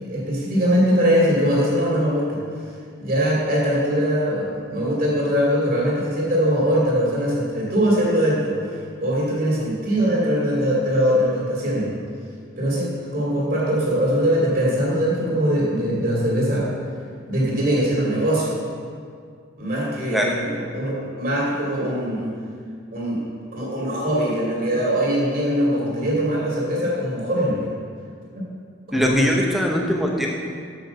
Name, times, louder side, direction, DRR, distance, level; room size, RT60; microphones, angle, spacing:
voice 1, 0.1-2.4 3.0-11.9 12.6-16.7 17.3-18.5 19.6-22.3 22.9-23.2 23.5-27.7 28.9-29.3, equal, 45° right, -5 dB, 2.7 m, -21 dB
voice 2, 28.9-30.3, equal, ahead, -1 dB, 0.8 m, -21 dB
6.9 x 6.4 x 6.9 m, 2.1 s
head